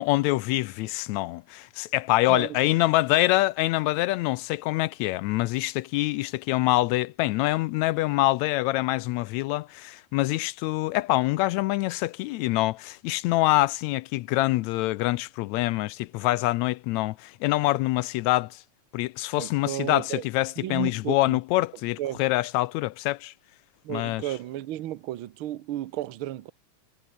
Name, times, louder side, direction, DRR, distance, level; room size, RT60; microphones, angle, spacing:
voice 1, 0.0-18.6 18.9-23.3 23.9-24.2, left 18 dB, 80° left, 1.6 m, -25 dB
voice 2, 2.3-2.6 19.4-20.2 20.6-21.4 22.0-22.2 23.8-26.5, right 13 dB, 70° right, 1.2 m, -33 dB
omnidirectional pair, 3.6 m